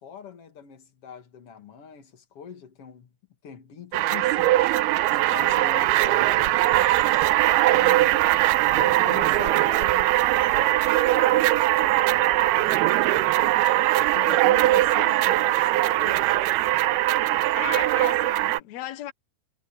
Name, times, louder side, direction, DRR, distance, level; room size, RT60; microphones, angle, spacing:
voice 1, 0.0-3.1 3.4-4.8 5.1-7.0 7.5-13.4 13.9-16.5 17.1-17.9, left 7 dB, 45° left, 2.6 m, -42 dB
sound 1, 3.9-18.6, right 16 dB, 85° right, 2.6 m, -21 dB
voice 2, 17.6-19.1, left 12 dB, 85° left, 1.5 m, -35 dB
omnidirectional pair, 4.5 m